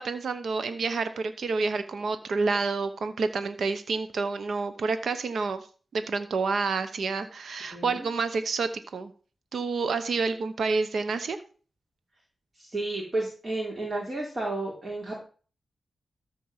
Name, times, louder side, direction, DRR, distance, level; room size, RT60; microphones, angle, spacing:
voice 1, 0.0-5.7 5.9-9.1 9.5-11.4, right 4 dB, 80° right, 10 dB, 0.9 m, -29 dB
voice 2, 7.7-8.1 12.6-15.2, right 2 dB, 40° right, -2 dB, 3.4 m, -32 dB
13.5 x 4.5 x 7.3 m, 0.39 s
wide cardioid pair, 85°, 0 cm